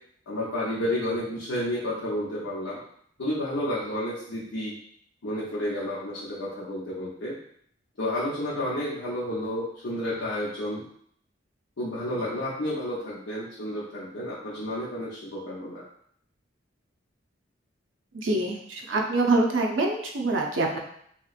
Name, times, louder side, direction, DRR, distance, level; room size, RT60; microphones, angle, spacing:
voice 1, 0.3-2.8 3.2-4.7 5.2-7.4 8.0-10.8 11.8-15.8, left 1 dB, 85° left, -7 dB, 0.7 m, -31 dB
voice 2, 18.1-20.8, right 2 dB, 80° right, 0 dB, 0.6 m, -25 dB
3.0 x 2.9 x 2.4 m, 0.67 s
head